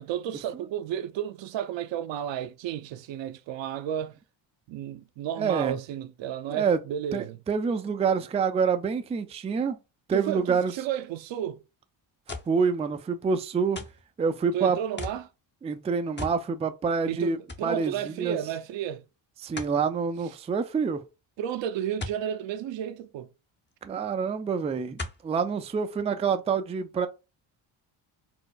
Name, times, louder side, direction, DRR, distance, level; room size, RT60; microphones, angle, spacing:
voice 1, 0.0-4.2 4.7-7.4 10.1-11.6 14.5-15.3 17.1-19.0 21.4-23.3, right 10 dB, 60° right, 0.6 m, -32 dB
voice 2, 5.4-5.8 6.5-6.8 7.1-9.8 10.1-10.7 12.5-13.8 14.2-14.8 15.6-18.4 19.4-21.0 23.8-27.1, right 5 dB, 15° right, 0.3 m, -27 dB
sound 1, 12.3-12.6 13.7-14.1 15.0-15.3 16.2-16.4 16.8-16.9 17.5-17.7 19.6-19.8 22.0-22.2 23.7-23.8 25.0-25.3 26.0-26.1, left 2 dB, 20° left, 0.7 m, -37 dB
4.4 x 2.0 x 2.3 m
supercardioid pair, 75°, 50 cm